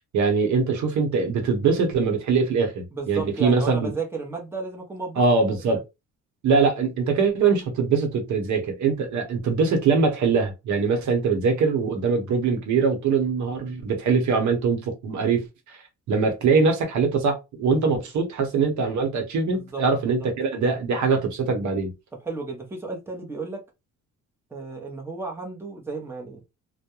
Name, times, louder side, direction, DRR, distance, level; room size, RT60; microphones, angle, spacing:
voice 1, 0.1-3.9 5.2-5.8 6.4-15.4 15.7-15.8 16.1-21.9, right 4 dB, 70° right, 0.8 m, -22 dB
voice 2, 2.9-5.2 5.7-5.8 19.5-19.8 22.2-23.6 24.5-26.4, right 4 dB, 10° right, 0.7 m, -33 dB
2.3 x 2.1 x 2.9 m
cardioid pair, 90°, 30 cm